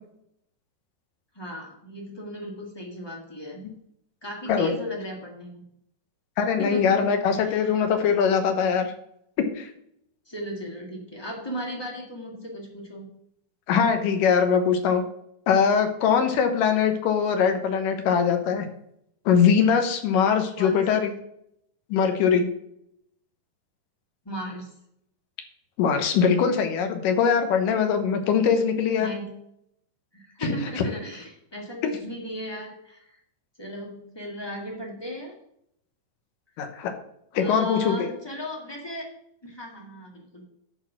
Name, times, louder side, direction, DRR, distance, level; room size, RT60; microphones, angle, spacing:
voice 1, 1.3-3.6 4.2-5.6 6.6-7.8 10.2-13.1 20.5-20.8 24.2-24.7 29.0-29.3 30.1-33.1 33.6-35.3 37.3-39.1 39.4-40.4, equal, 25° left, -1 dB, 0.5 m, -36 dB
voice 2, 6.4-8.9 9.6-9.7 13.7-15.0 15.5-18.7 19.3-21.1 21.9-22.5 25.8-29.1 30.4-30.6 36.6-36.9 37.3-38.1, left 6 dB, 90° left, 6 dB, 2.7 m, -22 dB
11.0 x 4.2 x 6.0 m, 0.74 s
omnidirectional pair, 3.8 m